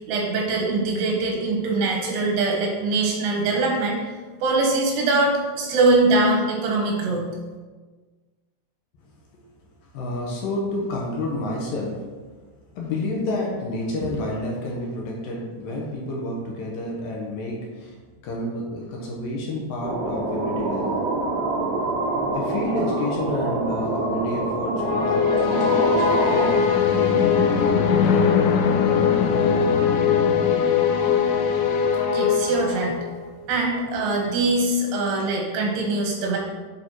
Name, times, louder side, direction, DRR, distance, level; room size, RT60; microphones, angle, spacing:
voice 1, 0.1-4.0 4.4-7.3 32.1-33.0 33.5-36.4, right 2 dB, 80° right, -1 dB, 3.5 m, -22 dB
voice 2, 9.9-12.1 12.8-17.9 18.2-21.1 22.3-27.5 29.2-29.5, left 1 dB, 70° left, -2 dB, 2.5 m, -29 dB
sound 1, 19.8-26.6, right 2 dB, 65° right, 1.7 m, -26 dB
sound 2, 24.8-33.2, left 6 dB, 90° left, 2.7 m, -20 dB
8.7 x 4.2 x 4.5 m, 1.4 s
omnidirectional pair, 4.8 m